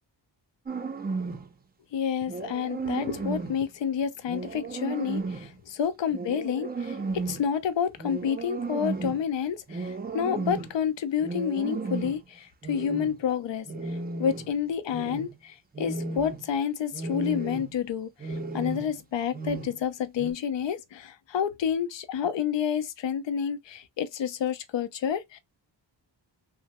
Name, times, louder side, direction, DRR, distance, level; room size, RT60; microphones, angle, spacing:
sound 1, 0.7-1.5 2.3-3.6 4.3-5.5 6.1-7.5 8.0-9.3 9.7-10.8 11.2-12.2 12.6-13.2 13.7-14.6 14.9-15.4 15.7-16.5 16.9-17.8 18.2-19.0 19.3-19.9 20.2-20.3, right 3 dB, 25° right, 0.4 m, -34 dB
voice 1, 1.9-13.7 14.2-25.4, left 8 dB, 75° left, 0.6 m, -29 dB
3.0 x 2.1 x 2.8 m
wide cardioid pair, 115°, 44 cm